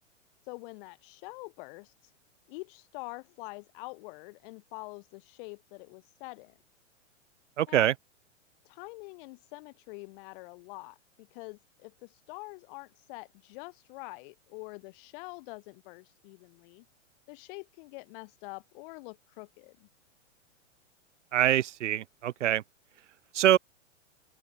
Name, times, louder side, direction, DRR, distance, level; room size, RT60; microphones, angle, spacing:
voice 1, 0.5-1.9 2.5-6.5 7.7-7.9 8.6-16.8 17.3-19.9, left 27 dB, 45° left, 3.0 m, -45 dB
voice 2, 7.6-7.9 21.3-22.6 23.3-23.6, right 12 dB, 75° right, 1.6 m, -24 dB
open air
hypercardioid pair, 135°, 37 cm